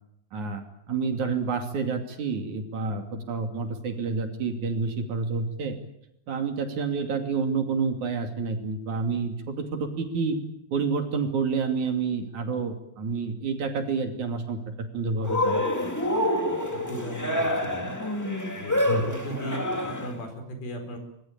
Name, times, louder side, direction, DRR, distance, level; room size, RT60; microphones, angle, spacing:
voice 1, 0.3-5.8 6.3-10.4 10.7-16.1 18.9-19.1, right 4 dB, 55° right, 5 dB, 3.9 m, -29 dB
Cheering, 15.2-20.2, left 1 dB, 5° left, 1.5 m, -27 dB
voice 2, 16.5-17.9 18.5-21.0, equal, 75° left, 6 dB, 6.6 m, -37 dB
25.0 x 21.5 x 8.8 m, 0.79 s
omnidirectional pair, 4.3 m